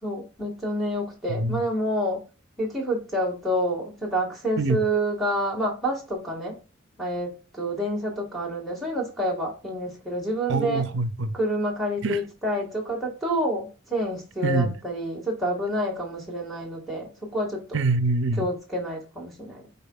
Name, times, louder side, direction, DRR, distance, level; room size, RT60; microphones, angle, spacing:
voice 1, 0.0-2.3 2.6-6.6 7.0-10.9 11.3-17.8 18.4-19.7, equal, ahead, 1.8 m, -28 dB
voice 2, 1.3-1.6 4.6-4.8 10.5-11.4 12.0-12.2 14.4-14.7 17.7-18.5, right 3 dB, 60° right, 0.6 m, -24 dB
5.4 x 4.1 x 2.4 m
head